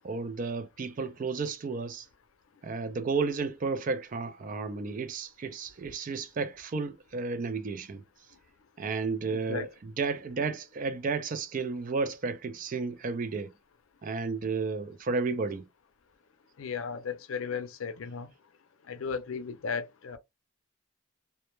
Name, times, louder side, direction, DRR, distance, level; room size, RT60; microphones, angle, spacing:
voice 1, 0.0-2.1 2.6-8.0 8.8-13.5 14.0-15.6, right 4 dB, 40° right, 0.3 m, -32 dB
voice 2, 9.3-9.7 16.6-18.3 18.9-20.2, left 6 dB, 80° left, 0.5 m, -35 dB
2.1 x 2.1 x 2.9 m
head